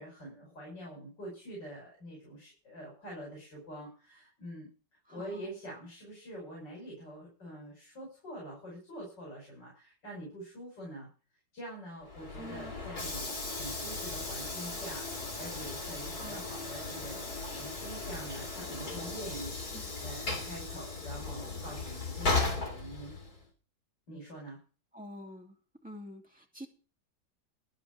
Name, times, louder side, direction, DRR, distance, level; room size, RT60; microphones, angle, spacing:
voice 1, 0.0-4.7 5.1-11.1 11.5-23.1 24.1-24.6, right 1 dB, 75° left, -3 dB, 6.1 m, -45 dB
voice 2, 5.0-5.5 12.3-12.7 16.2-16.4 19.7-19.8 24.9-25.6 25.8-26.7, equal, 5° right, -1 dB, 2.9 m, -47 dB
Train / Sliding door, 12.0-23.5, left 3 dB, 55° left, 3.6 m, -36 dB
13.0 x 5.2 x 9.1 m, 0.36 s
omnidirectional pair, 1.9 m